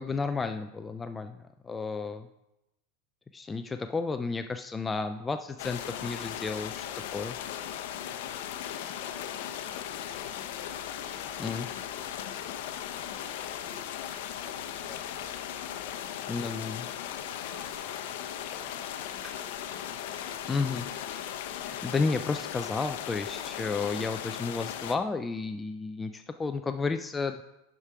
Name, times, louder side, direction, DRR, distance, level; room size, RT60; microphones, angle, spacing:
voice 1, 0.0-1.4 1.6-2.3 3.3-6.9 7.1-7.4 11.4-11.7 16.3-16.9 20.5-20.9 21.5-27.4, left 4 dB, 10° left, 8 dB, 0.3 m, -32 dB
sound 1, 5.6-25.0, left 10 dB, 65° left, 0.7 m, -37 dB
voice 2, 7.7-8.4 8.8-11.3 12.5-19.3 20.1-20.8, right 3 dB, 40° right, 0 dB, 2.2 m, -58 dB
Crumpling crinkling, 17.4-23.2 23.5-23.6, right 1 dB, 20° right, 1.5 m, -57 dB
11.5 x 5.0 x 4.7 m, 0.92 s
supercardioid pair, 155°, 0 cm